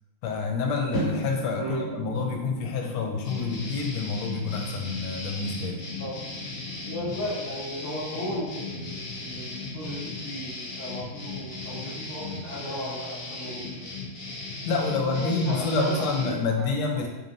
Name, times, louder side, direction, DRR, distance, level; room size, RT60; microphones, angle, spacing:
voice 1, 0.2-5.8 14.6-17.1, left 4 dB, 85° left, 2 dB, 1.5 m, -28 dB
sound 1, 0.9-7.1, right 1 dB, 50° left, 1.6 m, -38 dB
voice 2, 1.5-1.8 6.0-6.1 6.8-13.9 14.9-16.7, left 1 dB, 15° left, -9 dB, 0.5 m, -35 dB
sound 2, 3.2-16.4, left 3 dB, 70° left, 0.6 m, -37 dB
3.3 x 2.8 x 3.8 m, 1.1 s
omnidirectional pair, 2.3 m